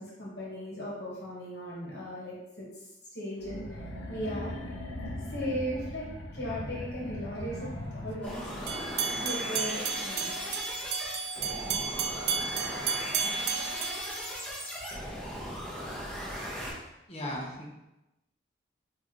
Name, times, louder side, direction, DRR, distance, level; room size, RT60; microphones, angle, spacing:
voice 1, 0.0-2.7 3.1-3.8 4.1-4.6 5.2-6.0 6.3-10.6, equal, 60° left, -5 dB, 1.3 m, -37 dB
sound 1, 3.4-8.6, left 1 dB, 90° left, 0.7 m, -39 dB
sound 2, 8.2-16.7, equal, 5° left, 1.1 m, -38 dB
sound 3, 8.7-14.9, right 6 dB, 55° right, 0.3 m, -33 dB
voice 2, 16.7-17.7, left 1 dB, 30° left, -4 dB, 0.8 m, -38 dB
4.5 x 2.7 x 3.7 m, 0.95 s
head